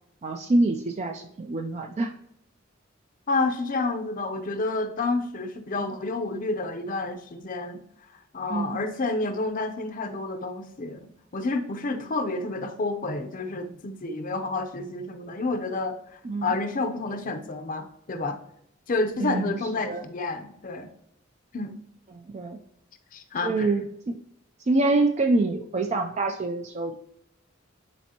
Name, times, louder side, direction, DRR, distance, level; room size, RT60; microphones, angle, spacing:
voice 1, 0.2-2.1 8.5-8.8 16.2-16.5 19.2-19.6 19.8-20.0 22.1-22.6 23.4-24.2 24.7-26.9, right 2 dB, 35° right, 5 dB, 0.4 m, -26 dB
voice 2, 3.3-7.8 8.3-18.4 18.9-20.9 21.5-21.7 23.1-23.7, left 3 dB, 45° left, 6 dB, 0.6 m, -29 dB
10.0 x 4.4 x 2.8 m, 0.75 s
head